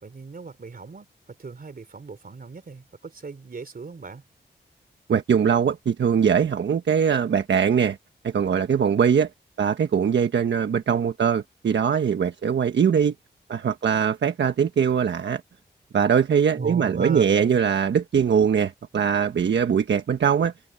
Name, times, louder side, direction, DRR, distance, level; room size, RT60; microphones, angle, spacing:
voice 1, 0.0-4.2 16.6-17.6, right 4 dB, 50° right, 3.6 m, -37 dB
voice 2, 5.1-8.0 8.2-9.3 9.6-13.1 13.5-15.4 15.9-20.5, right 7 dB, 75° right, 1.3 m, -21 dB
supercardioid pair, 40°, 19 cm